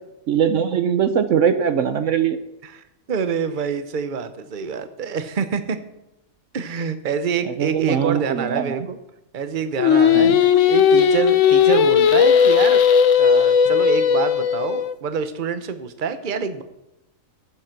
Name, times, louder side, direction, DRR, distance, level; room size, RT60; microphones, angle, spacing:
voice 1, 0.3-2.4 7.4-8.9 10.1-10.4, right 8 dB, 65° right, 10 dB, 1.1 m, -21 dB
voice 2, 2.6-5.8 6.5-9.0 9.3-10.3 10.7-12.8 13.2-16.6, right 6 dB, 40° right, 11 dB, 1.0 m, -26 dB
Singing, 9.8-14.9, left 7 dB, 65° left, 1.1 m, -16 dB
14.5 x 7.7 x 6.0 m, 0.92 s
omnidirectional pair, 1.5 m